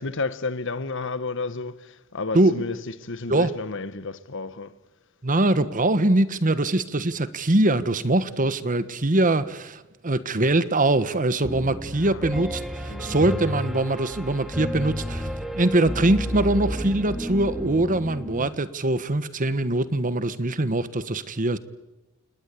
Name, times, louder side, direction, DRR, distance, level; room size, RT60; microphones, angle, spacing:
voice 1, 0.0-4.7 12.0-12.2 12.9-13.2, left 3 dB, 65° left, 1.3 m, -32 dB
voice 2, 5.2-15.3 15.5-21.6, right 2 dB, 40° right, 1.3 m, -23 dB
Piano, 11.4-18.5, equal, ahead, 2.5 m, -32 dB
29.0 x 19.5 x 8.4 m
head